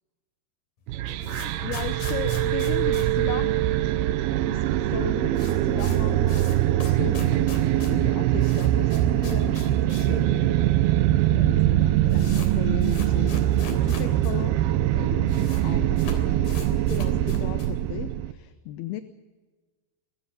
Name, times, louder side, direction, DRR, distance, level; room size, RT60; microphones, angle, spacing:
sound 1, 0.8-4.1 4.3-4.4 4.7-4.8 5.0-10.2 10.5-10.6 11.3-11.4 11.6-14.3 14.6-14.7 14.9-15.6 15.9-17.8, left 5 dB, 55° left, 4.9 m, -43 dB
sound 2, 0.9-18.3, right 13 dB, 75° right, 2.6 m, -23 dB
voice 1, 1.0-3.5 4.4-10.6 11.3-19.0, left 12 dB, 75° left, 10 dB, 2.7 m, -36 dB
25.0 x 20.0 x 5.4 m, 1.4 s
omnidirectional pair, 4.8 m